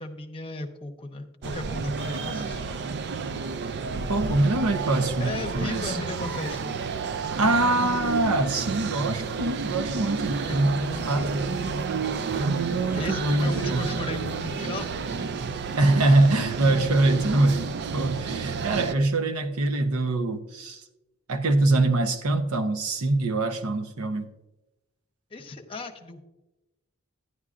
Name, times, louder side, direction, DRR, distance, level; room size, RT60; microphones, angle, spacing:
voice 1, 0.0-2.8 5.2-6.7 10.4-12.5 12.9-15.3 25.3-26.2, left 2 dB, 25° left, 4 dB, 0.8 m, -36 dB
sound 1, 1.4-18.9, right 5 dB, 50° right, 0.4 m, -31 dB
voice 2, 4.1-6.0 7.4-11.5 12.4-13.8 15.8-17.6 17.9-20.8 21.3-24.3, right 2 dB, 75° right, 8 dB, 0.7 m, -24 dB
11.0 x 9.6 x 2.5 m, 0.97 s
head